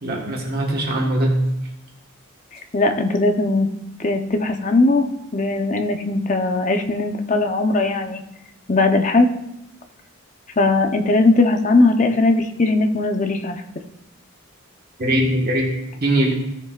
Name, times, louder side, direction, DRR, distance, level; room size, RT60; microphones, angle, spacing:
voice 1, 0.0-1.5 15.0-16.3, right 1 dB, 45° right, -1 dB, 1.5 m, -21 dB
voice 2, 2.7-3.7 4.0-8.2 8.7-9.3 10.6-13.6, left 2 dB, 35° left, 5 dB, 0.8 m, -19 dB
16.5 x 6.8 x 2.5 m, 0.89 s
head